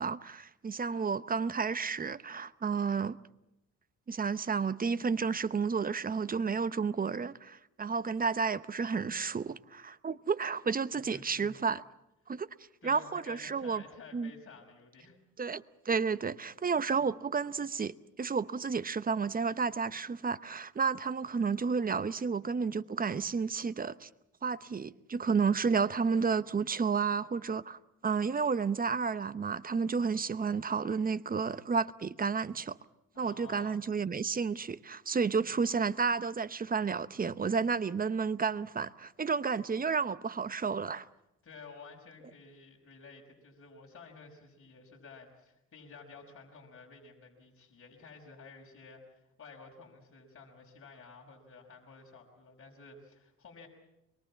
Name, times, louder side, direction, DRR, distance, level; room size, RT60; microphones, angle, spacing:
voice 1, 0.0-3.2 4.1-11.8 12.3-12.5 12.8-13.8 14.1-14.3 15.4-24.1 24.4-32.8 33.2-41.1, right 5 dB, 30° right, 0.9 m, -31 dB
voice 2, 11.1-11.6 12.8-15.2 33.1-33.8 41.4-53.7, left 4 dB, 45° left, 5.4 m, -52 dB
24.5 x 22.0 x 7.3 m
cardioid pair, 90°, 30 cm